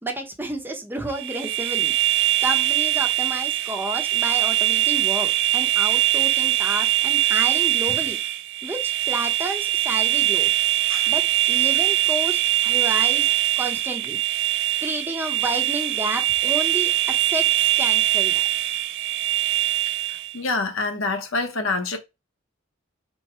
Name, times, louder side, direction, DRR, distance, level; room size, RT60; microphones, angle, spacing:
voice 1, 0.0-1.9 2.4-8.2 8.6-10.5 11.1-11.2 11.5-13.3 13.6-14.2 14.8-18.4, right 1 dB, 10° right, 0.8 m, -31 dB
sound 1, 1.1-20.4, right 14 dB, 60° right, 0.4 m, -22 dB
voice 2, 20.1-22.0, left 3 dB, 75° left, 0.9 m, -27 dB
4.3 x 2.2 x 4.6 m
head